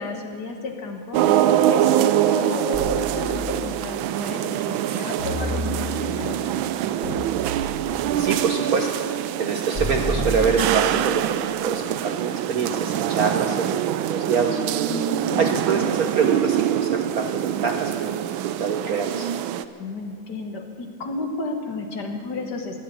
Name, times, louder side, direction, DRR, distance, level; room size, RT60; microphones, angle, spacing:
voice 1, 0.0-6.7 14.9-15.6 19.8-22.8, left 2 dB, 55° left, 4 dB, 1.9 m, -32 dB
sound 1, 1.1-19.6, right 11 dB, 75° right, 1.3 m, -24 dB
sound 2, 2.7-3.8 5.2-6.2 7.0-8.1 9.7-11.2, left 1 dB, 35° left, 4.0 m, -31 dB
voice 2, 8.2-8.9 9.4-14.6 15.4-18.1 18.4-19.3, right 5 dB, 60° right, 4 dB, 1.0 m, -25 dB
14.5 x 11.5 x 8.5 m, 2.6 s
omnidirectional pair, 2.3 m